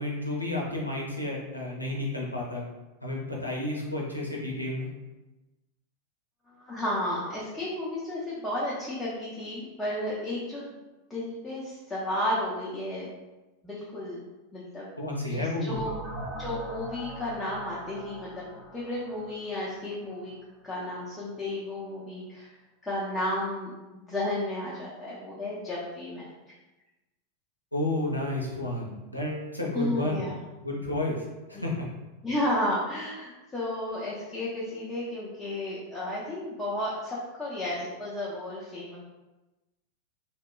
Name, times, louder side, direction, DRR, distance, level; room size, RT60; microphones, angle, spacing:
voice 1, 0.0-2.6 3.0-4.9 15.0-15.9 27.7-30.3 30.6-31.7, left 1 dB, 85° left, -3 dB, 0.5 m, -31 dB
voice 2, 6.6-10.7 11.1-13.1 13.6-14.2 14.5-14.9 15.3-15.9 16.4-18.4 18.7-20.3 20.6-22.5 22.8-26.3 29.7-30.3 32.2-39.0, left 1 dB, 10° left, -8 dB, 0.5 m, -32 dB
sound 1, 15.7-20.4, right 1 dB, 35° right, 0.9 m, -41 dB
2.8 x 2.1 x 2.3 m, 1.1 s
figure-of-eight pair, 90°, 0 cm